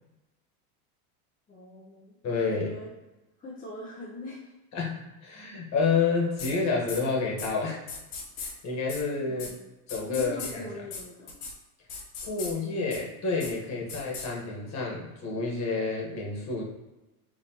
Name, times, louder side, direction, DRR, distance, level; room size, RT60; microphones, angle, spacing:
voice 1, 1.5-2.2 2.5-2.9 3.4-4.5 9.3-9.7 10.1-11.4, left 1 dB, 20° left, -5 dB, 0.7 m, -42 dB
voice 2, 2.2-2.7 4.7-7.9 8.4-9.5 9.9-10.6 12.2-16.6, left 4 dB, 35° left, -2 dB, 1.4 m, -29 dB
sound 1, 6.4-6.5 6.9-7.0 7.4-7.5 7.9-8.5 8.9-9.0 9.4-9.5 9.9-10.5 10.9-11.0 11.3-11.5 11.9-12.5 12.9-13.0 13.4-13.5 13.9-14.3, left 5 dB, 70° left, 1.3 m, -37 dB
5.4 x 2.8 x 2.9 m, 1.0 s
supercardioid pair, 125°, 45 cm